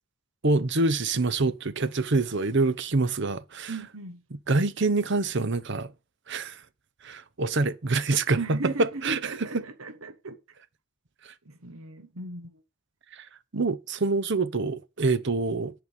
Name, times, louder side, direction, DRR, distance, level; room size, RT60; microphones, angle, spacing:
voice 1, 0.4-3.7 4.5-5.9 6.3-6.6 7.0-9.6 11.2-11.3 13.1-13.3 13.5-15.7, right 3 dB, 55° right, 0.9 m, -26 dB
voice 2, 3.7-4.2 8.3-10.4 11.4-12.6, right 3 dB, 75° right, 1.3 m, -37 dB
10.0 x 5.4 x 8.2 m
head